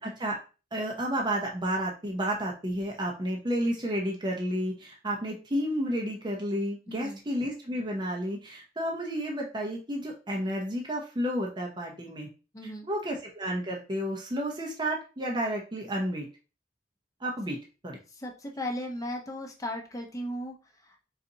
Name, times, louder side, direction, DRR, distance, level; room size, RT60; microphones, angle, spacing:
voice 1, 0.0-0.4 0.7-12.3 12.9-16.3 17.2-17.6 17.8-18.0, equal, 25° right, -1 dB, 0.7 m, -31 dB
voice 2, 6.9-7.2 12.5-12.9 18.1-20.6 20.8-21.0, left 1 dB, 20° left, 2 dB, 0.8 m, -36 dB
4.0 x 4.0 x 2.7 m, 0.33 s
head